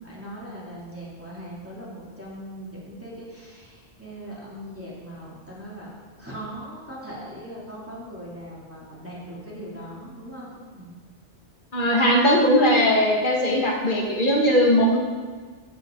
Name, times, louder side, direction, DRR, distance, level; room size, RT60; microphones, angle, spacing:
voice 1, 0.0-5.9 6.2-10.9, equal, 10° right, -7 dB, 2.9 m, -39 dB
voice 2, 11.7-15.0, equal, 45° left, -2 dB, 1.9 m, -19 dB
14.5 x 8.2 x 3.9 m, 1.5 s
omnidirectional pair, 1.2 m